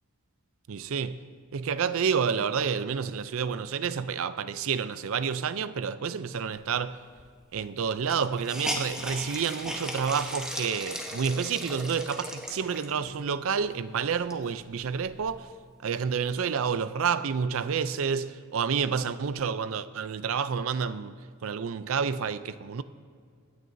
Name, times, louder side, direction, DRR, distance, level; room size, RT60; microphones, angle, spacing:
voice 1, 0.7-1.2 1.5-7.0 7.5-15.5 15.8-21.1 21.4-22.8, right 6 dB, 65° right, 0.4 m, -29 dB
Hiss, 7.2-7.3 7.5-7.6 8.0-13.1 13.6-13.7 14.1-15.5, equal, 5° right, 1.0 m, -37 dB
24.5 x 9.4 x 2.7 m
head